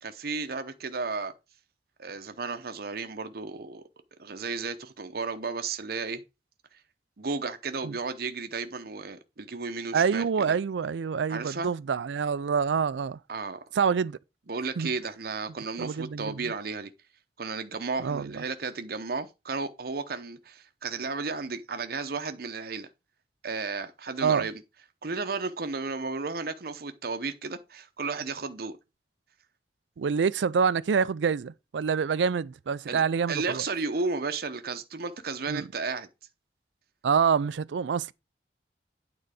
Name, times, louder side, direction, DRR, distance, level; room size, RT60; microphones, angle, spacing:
voice 1, 0.0-1.3 2.0-3.8 4.2-6.2 7.2-10.6 11.3-11.7 13.3-13.6 14.5-16.9 17.4-22.9 23.4-24.5 25.0-28.8 32.9-33.0 33.3-36.1, right 4 dB, 60° right, 0.7 m, -33 dB
voice 2, 9.9-13.2 13.7-14.2 14.8-14.9 15.8-16.5 18.0-18.4 24.2-24.5 30.0-33.6 35.5-35.7 37.0-38.1, right 6 dB, 90° right, 0.4 m, -26 dB
9.0 x 3.9 x 4.9 m
head